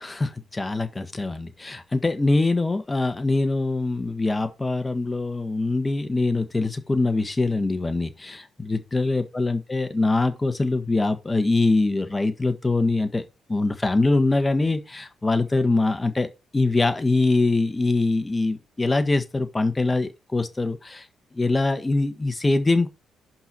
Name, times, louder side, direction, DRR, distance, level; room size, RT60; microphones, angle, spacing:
voice 1, 0.0-13.2 13.5-16.3 16.5-21.1 21.3-22.9, left 2 dB, 20° left, 1.3 m, -23 dB
5.4 x 4.2 x 6.0 m
cardioid pair, 90°, 0 cm